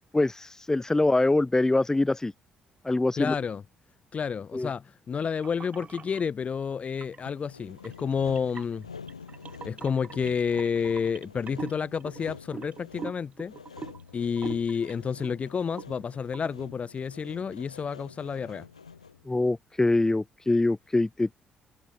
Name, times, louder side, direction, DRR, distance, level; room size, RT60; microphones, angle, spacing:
voice 1, 0.1-2.3 2.8-3.3 4.5-4.7 19.3-21.3, left 2 dB, 15° left, 1.2 m, -24 dB
voice 2, 3.2-3.6 4.1-8.9 9.6-13.5 14.1-18.6, left 6 dB, 40° left, 0.8 m, -30 dB
sound 1, 5.4-6.2 6.9-7.3 7.8-15.3 15.6-16.0 16.3-16.5, right 6 dB, 40° right, 2.4 m, -43 dB
Sawing, 7.3-19.3, left 6 dB, 85° left, 1.4 m, -47 dB
figure-of-eight pair, 45°, 3 cm